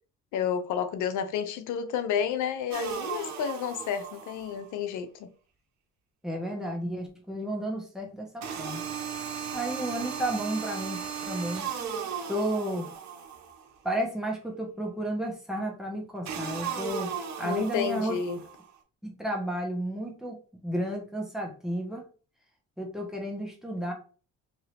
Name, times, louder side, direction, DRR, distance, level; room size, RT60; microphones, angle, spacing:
voice 1, 0.3-5.3 17.4-18.4, left 8 dB, 80° left, 0.5 m, -31 dB
sound 1, 2.7-4.7 8.4-13.7 16.3-18.7, right 7 dB, 65° right, 0.8 m, -36 dB
voice 2, 6.2-8.8 9.5-11.0 11.3-11.7 12.3-12.9 13.8-18.2 19.0-20.4 20.6-22.0 22.8-23.9, right 1 dB, ahead, 1.1 m, -32 dB
2.8 x 2.7 x 3.2 m
cardioid pair, 90°, 30 cm